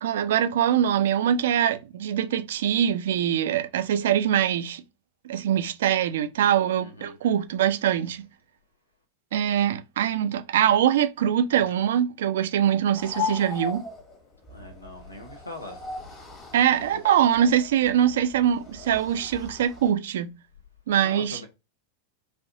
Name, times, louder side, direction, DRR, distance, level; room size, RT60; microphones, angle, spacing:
voice 1, 0.0-4.8 5.2-8.3 9.3-13.8 16.5-20.3 20.9-21.4, right 10 dB, 60° right, 0.4 m, -23 dB
voice 2, 6.8-7.1 14.5-15.8 16.1-16.3 16.9-17.0 21.0-21.5, left 2 dB, 80° left, 0.7 m, -41 dB
sound 1, 12.9-19.9, left 5 dB, 30° left, 1.2 m, -38 dB
4.3 x 2.6 x 2.5 m
figure-of-eight pair, 90°, 0 cm